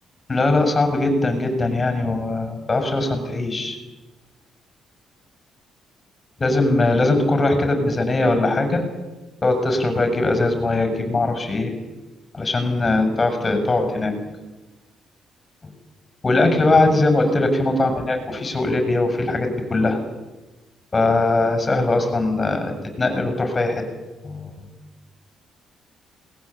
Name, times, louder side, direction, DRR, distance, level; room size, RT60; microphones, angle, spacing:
voice 1, 0.3-3.8 6.4-8.7 9.4-11.7 12.3-14.1 16.2-20.0 20.9-23.8 24.2-24.5, left 2 dB, 25° left, 6 dB, 6.8 m, -20 dB
21.5 x 19.0 x 8.5 m, 1.2 s
cardioid pair, 90°, 0 cm